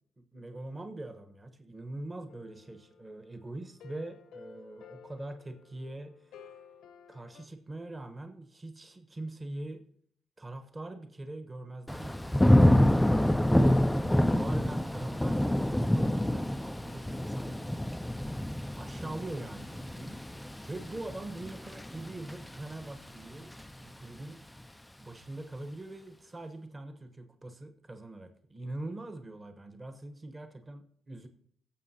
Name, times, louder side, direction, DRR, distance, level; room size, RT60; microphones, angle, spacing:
voice 1, 0.3-6.3 7.1-9.8 10.4-18.5 18.7-23.5 23.8-24.4 25.0-31.3, right 2 dB, 25° right, 7 dB, 1.1 m, -43 dB
sound 1, 2.3-7.5, left 6 dB, 85° left, 1.0 m, -54 dB
Thunder / Rain, 11.9-22.8 23.2-23.7, left 1 dB, 5° left, 0.3 m, -27 dB
17.0 x 7.3 x 2.8 m, 0.63 s
cardioid pair, 90°, 0 cm